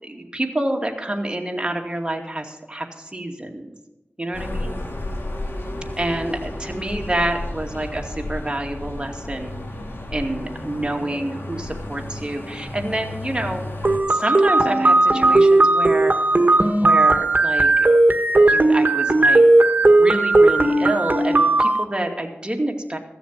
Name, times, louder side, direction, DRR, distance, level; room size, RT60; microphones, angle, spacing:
voice 1, 0.0-3.7 4.2-4.7 6.0-9.5 10.1-13.7 14.1-16.1 16.8-17.9 18.4-19.4 19.8-23.0, right 1 dB, 25° right, 2 dB, 2.4 m, -27 dB
sound 1, 4.3-14.0, left 1 dB, 70° left, 2.5 m, -32 dB
sound 2, 13.8-21.8, right 2 dB, 50° right, 1.3 m, -16 dB
15.5 x 7.1 x 7.6 m, 1.0 s
cardioid pair, 40°, 4 cm